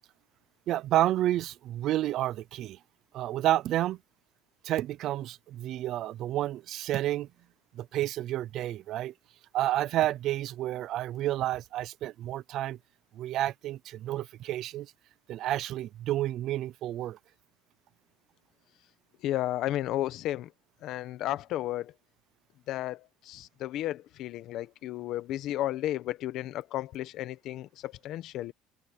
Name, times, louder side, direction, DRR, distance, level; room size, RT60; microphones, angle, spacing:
voice 1, 0.7-2.8 3.1-4.0 4.6-7.3 7.7-9.1 9.5-12.8 13.2-14.9 15.3-17.2, right 14 dB, 45° right, 0.5 m, -30 dB
voice 2, 19.2-20.5 20.8-21.9 22.7-28.5, left 14 dB, 45° left, 1.0 m, -33 dB
cardioid pair, 175°, 0 cm